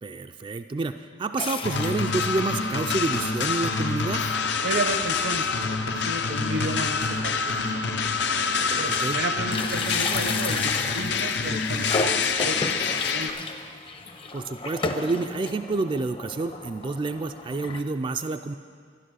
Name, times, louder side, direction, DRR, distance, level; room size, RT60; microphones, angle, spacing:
voice 1, 0.0-4.3 8.9-9.2 14.3-18.5, right 3 dB, 30° right, 8 dB, 0.3 m, -29 dB
sound 1, 1.4-2.5 3.1-3.2 3.4-3.5 4.3-4.4 4.8-5.0 5.4-5.5 6.7-6.8 7.5-7.6 7.9-9.2 9.4-17.8, left 3 dB, 30° left, 0.6 m, -33 dB
sound 2, 1.6-13.3, left 5 dB, 75° left, 0.7 m, -26 dB
voice 2, 4.6-8.1 8.8-12.1 12.4-13.3, right 2 dB, 85° right, 8 dB, 1.0 m, -33 dB
12.5 x 11.0 x 6.3 m, 2.1 s
head